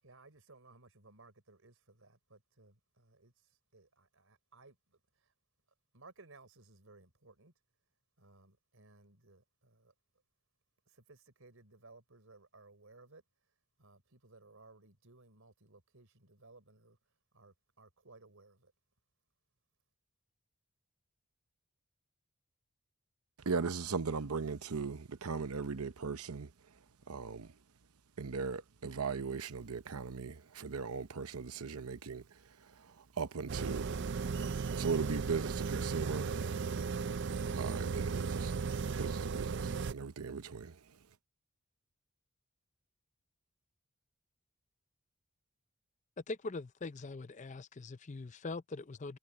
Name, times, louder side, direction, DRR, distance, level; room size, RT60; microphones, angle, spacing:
voice 1, 0.0-5.3 5.9-7.5 8.2-9.9 10.9-13.2 13.8-18.7, right 3 dB, 70° right, 3.7 m, -60 dB
voice 2, 23.4-26.5 27.1-27.6 28.2-34.4 34.7-36.4 37.5-38.7 39.0-41.0, right 5 dB, 85° right, 0.8 m, -38 dB
sound 1, 33.5-39.9, right 5 dB, 55° right, 0.5 m, -36 dB
voice 3, 46.3-49.2, left 3 dB, 35° left, 0.5 m, -42 dB
head